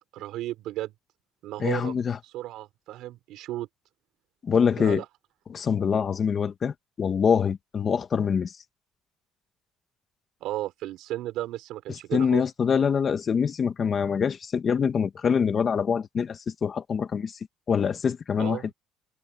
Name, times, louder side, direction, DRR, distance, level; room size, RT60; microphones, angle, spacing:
voice 1, 0.1-0.9 1.4-1.9 2.2-3.7 4.8-5.1 10.4-12.5 18.4-18.7, right 15 dB, 70° right, 5.7 m, -34 dB
voice 2, 1.6-2.2 4.4-5.0 5.5-8.5 12.1-17.3 17.7-18.6, left 6 dB, 30° left, 1.8 m, -25 dB
cardioid pair, 145°, 0 cm